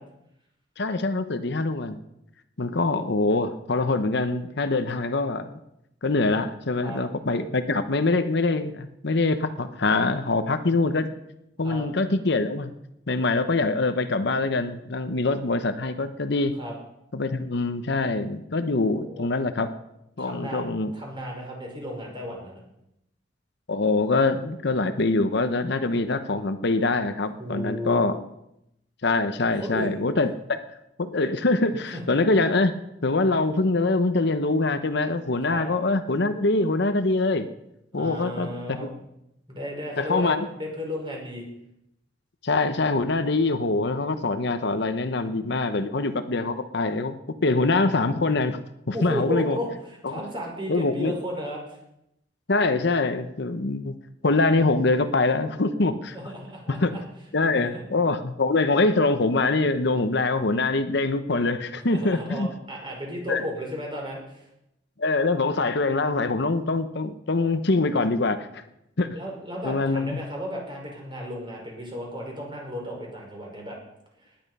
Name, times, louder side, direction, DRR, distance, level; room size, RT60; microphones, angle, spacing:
voice 1, 0.8-2.0 2.6-5.5 6.0-11.1 11.6-12.7 13.1-16.5 17.1-19.7 20.2-20.9 23.7-28.2 29.0-30.3 31.0-32.7 33.0-37.4 37.9-38.8 40.0-40.5 42.4-47.1 47.4-48.6 48.9-49.6 50.0-50.2 50.7-51.1 52.5-53.9 54.2-56.2 56.7-56.9 57.3-62.5 63.3-63.4 65.0-68.6 69.0-69.1 69.6-70.2, left 3 dB, 65° left, 9 dB, 0.9 m, -24 dB
voice 2, 18.9-19.3 20.2-20.7 20.9-22.6 27.4-28.1 29.6-29.9 31.9-32.0 35.5-35.7 37.9-38.9 39.5-41.4 48.9-51.8 56.1-57.0 57.5-57.8 61.9-64.4 69.2-73.8, equal, 25° right, -1 dB, 5.2 m, -34 dB
18.0 x 11.0 x 5.5 m, 0.83 s
head